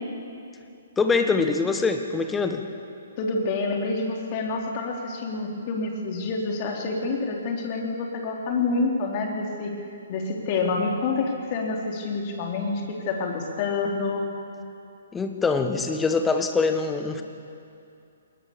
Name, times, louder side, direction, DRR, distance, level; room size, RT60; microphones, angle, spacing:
voice 1, 1.0-2.6 15.1-17.2, left 4 dB, 10° left, 6 dB, 1.5 m, -24 dB
voice 2, 3.2-9.7 10.1-14.3, left 3 dB, 35° left, 1 dB, 3.5 m, -27 dB
21.5 x 20.0 x 7.0 m, 2.6 s
figure-of-eight pair, 125°, 0 cm